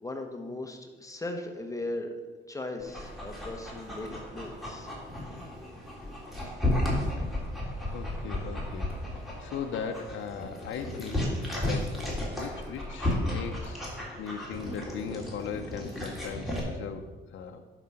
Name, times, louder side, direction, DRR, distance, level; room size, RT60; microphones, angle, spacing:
voice 1, 0.0-2.1 2.5-4.9, left 2 dB, 15° left, 4 dB, 1.3 m, -38 dB
Dog, 2.8-16.6, left 1 dB, ahead, 3.4 m, -34 dB
voice 2, 7.8-11.3 11.6-13.8 14.2-17.6, left 6 dB, 75° left, 4 dB, 0.8 m, -38 dB
11.0 x 5.0 x 5.7 m, 1.2 s
cardioid pair, 90°, 20 cm